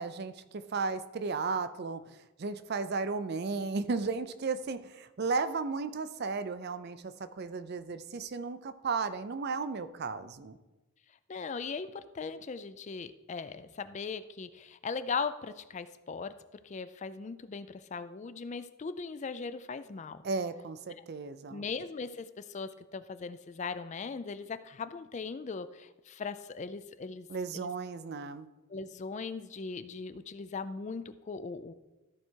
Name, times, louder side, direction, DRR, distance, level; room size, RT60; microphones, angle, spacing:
voice 1, 0.0-10.6 20.2-21.7 27.3-28.5, right 4 dB, 50° right, 12 dB, 0.4 m, -34 dB
voice 2, 11.3-16.4 16.6-20.2 21.5-27.3 27.5-27.7 28.7-31.7, left 5 dB, 35° left, 13 dB, 0.3 m, -39 dB
13.5 x 4.7 x 4.5 m, 1.1 s
head